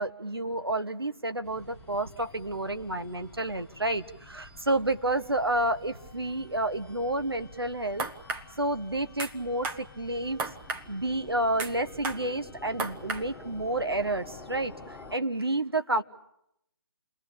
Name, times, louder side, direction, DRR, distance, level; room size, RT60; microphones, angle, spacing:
voice 1, 0.0-8.1 8.6-10.4 10.9-16.0, right 1 dB, 85° right, 9 dB, 1.4 m, -30 dB
sound 1, 1.4-15.2, left 2 dB, 5° left, 1.6 m, -49 dB
sound 2, 8.0-8.4 9.2-9.3 9.6-9.8 10.4-10.8 11.6-11.7 12.0-12.2 12.8-13.2, right 4 dB, 15° right, 1.0 m, -33 dB
29.0 x 21.5 x 8.7 m, 0.82 s
figure-of-eight pair, 145°, 12 cm